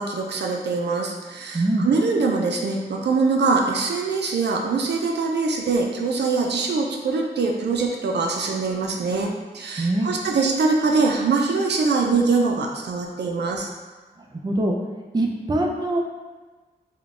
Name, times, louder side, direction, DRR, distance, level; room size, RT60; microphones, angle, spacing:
voice 1, 0.0-13.7, right 4 dB, 75° right, 0 dB, 0.5 m, -23 dB
voice 2, 1.5-1.9 9.8-10.1 14.3-14.8 15.1-16.0, right 1 dB, 25° right, 0 dB, 0.5 m, -23 dB
3.7 x 2.3 x 3.6 m, 1.3 s
cardioid pair, 60°, 18 cm